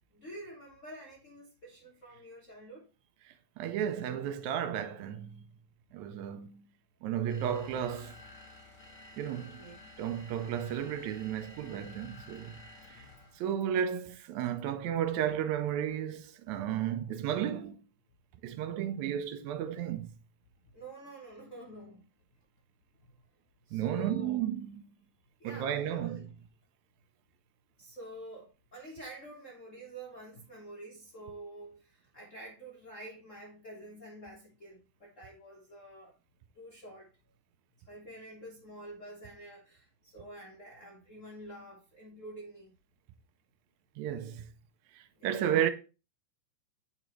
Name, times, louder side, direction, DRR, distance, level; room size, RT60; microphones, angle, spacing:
voice 1, 0.1-2.9 9.4-10.0 20.7-22.1 23.7-24.5 25.4-26.2 27.8-36.1 36.5-37.1 37.9-42.7 45.2-45.4, right 1 dB, 90° left, 0.6 m, -48 dB
voice 2, 3.6-5.4 5.9-6.6 7.0-8.1 9.2-9.6 10.0-12.5 13.4-17.8 18.4-20.1 23.7-24.8 25.4-26.3 44.0-44.4 45.2-45.7, right 9 dB, 80° right, 1.9 m, -33 dB
sound 1, 7.3-13.5, left 2 dB, 40° left, 1.1 m, -52 dB
8.5 x 3.8 x 3.0 m
omnidirectional pair, 3.4 m